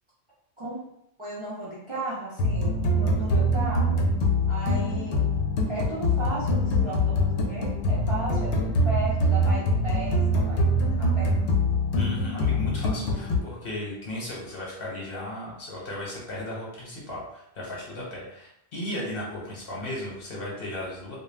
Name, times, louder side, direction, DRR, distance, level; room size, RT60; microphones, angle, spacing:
voice 1, 1.2-4.1 4.5-5.2 5.7-10.7 11.0-11.3, right 2 dB, 35° right, -8 dB, 0.5 m, -35 dB
sound 1, 2.4-13.4, left 1 dB, 80° left, 0.9 m, -24 dB
voice 2, 11.9-21.2, left 1 dB, 55° left, -5 dB, 1.1 m, -35 dB
2.3 x 2.2 x 3.2 m, 0.76 s
omnidirectional pair, 1.1 m